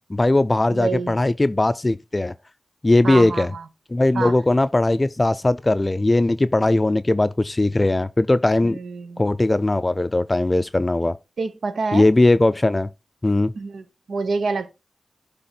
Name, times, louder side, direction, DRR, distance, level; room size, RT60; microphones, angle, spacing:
voice 1, 0.1-2.3 2.8-3.5 3.9-8.8 9.2-11.2 11.9-12.9 13.2-13.5, left 2 dB, 30° left, 0.4 m, -19 dB
voice 2, 0.7-1.2 3.0-3.7 4.1-4.3 8.6-9.2 11.4-12.1 13.5-14.7, right 4 dB, 80° right, 0.8 m, -27 dB
7.7 x 3.5 x 5.8 m
cardioid pair, 50°, 0 cm